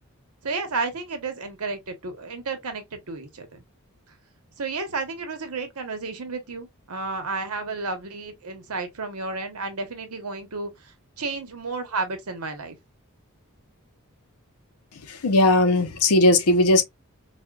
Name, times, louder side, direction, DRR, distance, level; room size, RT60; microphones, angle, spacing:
voice 1, 0.4-3.6 4.6-10.7 11.2-12.8, right 3 dB, 90° right, 0.9 m, -32 dB
voice 2, 15.2-16.8, left 2 dB, 90° left, 0.6 m, -18 dB
4.1 x 2.2 x 2.2 m
head